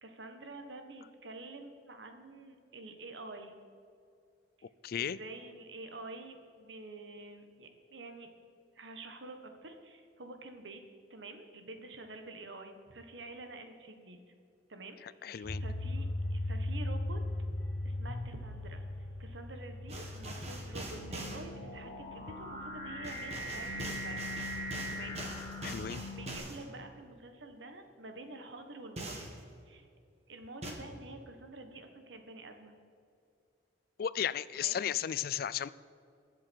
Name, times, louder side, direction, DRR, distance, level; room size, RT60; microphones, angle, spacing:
voice 1, 0.0-3.6 4.6-4.7 4.9-8.3 8.7-10.8 11.1-14.2 14.7-15.0 15.4-17.2 17.8-18.8 19.2-24.4 24.9-25.2 26.1-29.3 29.7-29.8 30.3-32.7 34.5-34.8, right 2 dB, 75° right, 6 dB, 1.4 m, -48 dB
voice 2, 4.8-5.2 15.0-15.6 25.6-26.0 34.0-35.7, left 9 dB, 55° left, 18 dB, 0.3 m, -34 dB
sound 1, 15.4-26.4, left 2 dB, 85° left, 1.4 m, -40 dB
sound 2, 18.9-26.4, right 1 dB, 20° left, 2.9 m, -44 dB
sound 3, 19.9-21.4 23.0-26.6 29.0-29.3 30.6-30.7, right 1 dB, 35° right, 1.8 m, -42 dB
22.0 x 7.6 x 4.6 m, 2.4 s
head